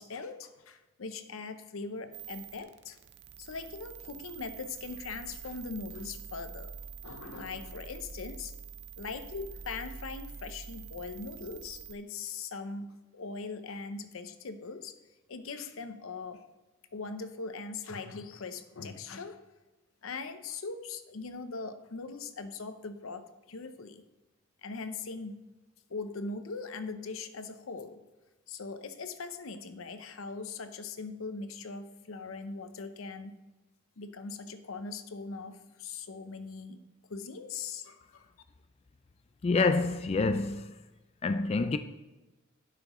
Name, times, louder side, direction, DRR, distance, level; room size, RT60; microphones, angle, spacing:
voice 1, 0.0-3.0 3.4-6.7 7.0-8.5 9.0-14.9 15.3-16.4 16.9-19.4 20.0-24.0 24.6-25.4 25.9-28.0 28.5-33.4 34.0-36.8 37.1-38.3, left 4 dB, 80° left, 0.7 m, -40 dB
sound 1, 2.1-11.9, right 6 dB, 55° right, 0.5 m, -46 dB
voice 2, 39.4-40.7 41.2-41.8, left 3 dB, 30° left, 0.3 m, -27 dB
11.5 x 5.9 x 3.0 m
head